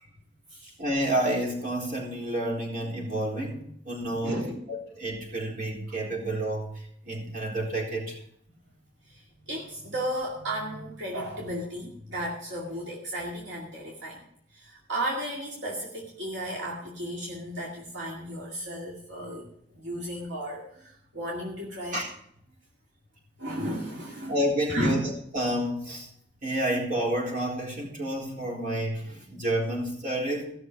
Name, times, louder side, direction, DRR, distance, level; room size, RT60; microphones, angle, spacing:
voice 1, 0.8-4.4 4.7-8.2 21.9-22.1 24.3-25.0 25.3-26.1 26.4-30.5, right 1 dB, 50° right, -2 dB, 4.1 m, -29 dB
voice 2, 4.0-4.6 5.9-6.0 9.0-14.2 14.5-22.0 23.4-25.0, right 1 dB, 75° right, -3 dB, 2.3 m, -34 dB
16.5 x 6.4 x 6.2 m, 0.68 s
head